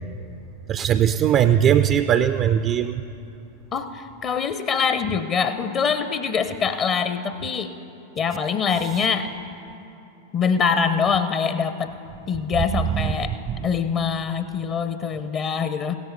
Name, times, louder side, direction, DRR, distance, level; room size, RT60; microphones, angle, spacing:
voice 1, 0.7-2.9 13.0-13.1, right 10 dB, 30° right, 11 dB, 0.3 m, -19 dB
voice 2, 3.7-7.7 8.2-9.3 10.3-11.9 12.3-13.3 13.6-16.0, left 6 dB, 30° left, 10 dB, 0.5 m, -24 dB
16.5 x 13.5 x 3.9 m, 2.8 s
figure-of-eight pair, 90°, 0 cm